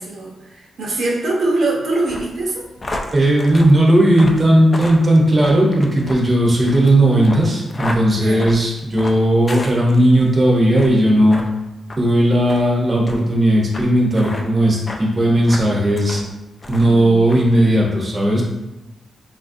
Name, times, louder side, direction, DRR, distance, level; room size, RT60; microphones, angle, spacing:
voice 1, 0.0-2.6 8.1-8.4 16.8-17.2, right 2 dB, 75° right, -3 dB, 0.8 m, -23 dB
sound 1, 2.1-10.3 10.7-11.0 11.3-11.5 11.9-12.0 12.5-12.6 13.1-13.2 13.7-13.8 14.1-14.4 14.9-15.0 15.5-16.3 16.6-17.0 17.3-17.4, left 1 dB, 35° left, 0.4 m, -32 dB
voice 2, 3.1-11.4 12.0-16.2 16.7-18.4, right 1 dB, 30° right, -3 dB, 0.7 m, -15 dB
3.6 x 2.4 x 2.6 m, 1.0 s
cardioid pair, 95°, 0 cm